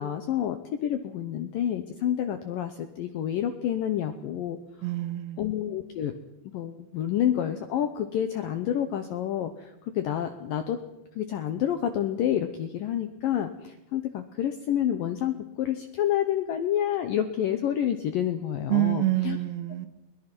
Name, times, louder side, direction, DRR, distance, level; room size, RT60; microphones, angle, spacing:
voice 1, 0.0-4.6 5.4-6.2 6.5-10.8 11.2-19.4, left 10 dB, 75° left, 8 dB, 2.0 m, -28 dB
voice 2, 4.8-5.4 18.7-19.9, right 17 dB, 75° right, 9 dB, 3.7 m, -26 dB
22.5 x 20.5 x 6.1 m, 0.92 s
omnidirectional pair, 5.3 m